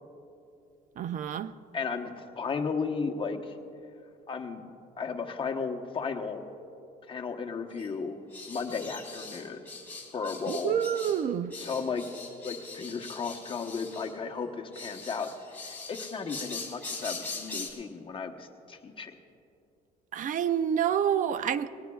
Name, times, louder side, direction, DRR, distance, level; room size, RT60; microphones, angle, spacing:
voice 1, 1.0-1.5 10.5-11.5 20.1-21.7, right 9 dB, 50° right, 14 dB, 0.5 m, -28 dB
voice 2, 1.7-3.5 4.3-4.6 5.0-6.4 7.1-8.2 8.5-9.6 10.1-10.8 11.6-12.0 12.4-19.1, left 5 dB, 30° left, 4 dB, 1.1 m, -34 dB
sound 1, 7.8-7.9 8.3-11.2 11.5-14.1 14.7-17.7, left 3 dB, 10° left, 3.4 m, -41 dB
19.5 x 18.0 x 2.4 m, 2.6 s
cardioid pair, 110°, 17 cm